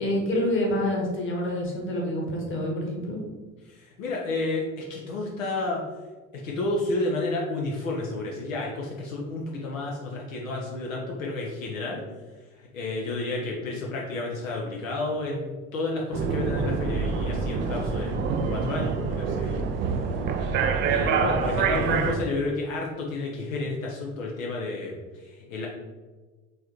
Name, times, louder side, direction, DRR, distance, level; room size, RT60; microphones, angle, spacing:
voice 1, 0.0-3.2, left 1 dB, 30° left, -1 dB, 1.3 m, -27 dB
voice 2, 3.6-5.8 6.3-12.0 12.5-18.2 18.4-19.6 20.9-25.7, left 2 dB, 70° left, -2 dB, 0.7 m, -31 dB
sound 1, 16.1-22.1, right 5 dB, 30° right, 0.3 m, -26 dB
4.5 x 3.3 x 3.0 m, 1.3 s
figure-of-eight pair, 60°, 41 cm